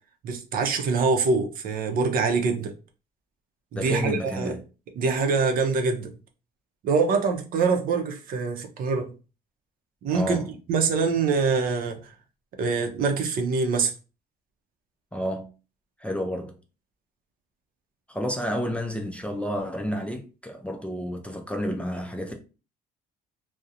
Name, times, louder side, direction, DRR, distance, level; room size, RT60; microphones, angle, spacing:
voice 1, 0.2-2.7 3.7-4.5 5.0-6.1 6.8-9.1 10.0-10.4 10.7-12.1 12.6-13.9, right 4 dB, 60° right, 0.5 m, -24 dB
voice 2, 3.7-4.6 10.1-10.5 15.1-15.5 16.0-16.6 18.1-22.3, equal, 5° left, 0.3 m, -30 dB
2.4 x 2.0 x 2.7 m
cardioid pair, 110°, 17 cm